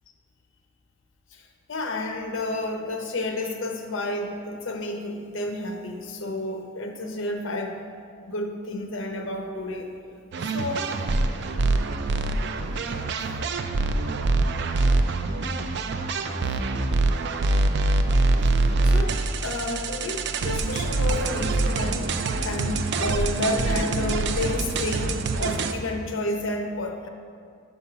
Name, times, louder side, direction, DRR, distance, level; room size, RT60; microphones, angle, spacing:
voice 1, 1.3-7.8 8.2-9.9 10.4-10.9 18.5-22.1 22.4-27.1, left 1 dB, 75° left, 4 dB, 0.7 m, -31 dB
sound 1, 10.3-25.7, right 2 dB, 60° right, 0.4 m, -24 dB
5.4 x 5.3 x 5.6 m, 2.2 s
head